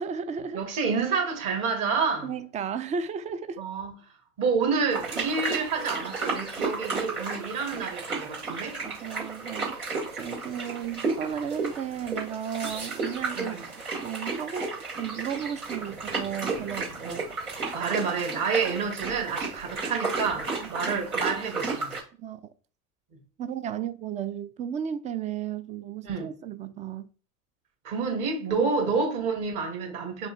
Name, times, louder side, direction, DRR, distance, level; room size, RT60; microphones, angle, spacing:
voice 1, 0.0-0.6 2.2-3.6 8.8-13.6 14.0-14.7 15.0-17.2 20.6-20.7 22.2-22.5 23.4-27.1 28.6-28.7, right 8 dB, 20° right, 0.3 m, -34 dB
voice 2, 0.5-2.3 3.6-3.9 4.4-8.8 13.3-13.7 17.0-17.2 17.7-21.9 23.1-23.2 26.0-26.3 27.8-30.3, right 5 dB, 50° right, 2.0 m, -29 dB
sound 1, 4.9-22.0, right 3 dB, 85° right, 2.5 m, -33 dB
5.2 x 3.0 x 3.2 m
hypercardioid pair, 80°, 43 cm